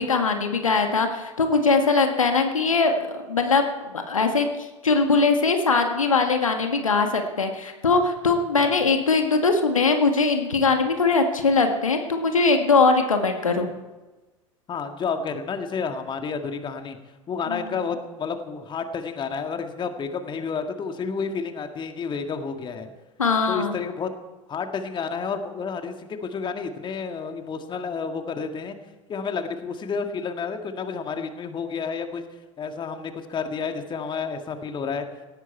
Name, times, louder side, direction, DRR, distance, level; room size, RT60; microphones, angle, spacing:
voice 1, 0.0-3.6 4.1-4.5 4.8-13.7 17.5-17.8 23.2-23.8, left 4 dB, 80° left, 5 dB, 1.7 m, -21 dB
voice 2, 14.7-17.0 17.3-22.9 23.5-24.1 24.5-28.8 29.1-32.2 32.6-35.1, left 5 dB, 30° left, 6 dB, 1.9 m, -30 dB
18.5 x 17.0 x 4.5 m, 1.2 s
figure-of-eight pair, 80°, 17 cm